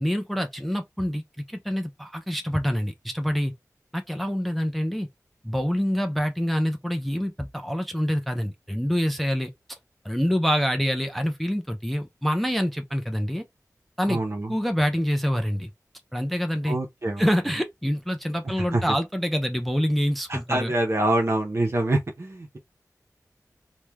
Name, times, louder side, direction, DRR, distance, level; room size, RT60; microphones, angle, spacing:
voice 1, 0.0-1.2 1.5-3.5 3.9-5.1 5.4-9.5 10.0-13.4 14.0-14.2 14.5-15.7 16.1-16.8 17.2-20.7, equal, ahead, 0.4 m, -26 dB
voice 2, 14.1-14.6 16.7-17.3 18.4-19.0 20.3-22.6, right 1 dB, 45° right, 0.6 m, -26 dB
3.1 x 2.1 x 2.2 m
wide cardioid pair, 60°, 6 cm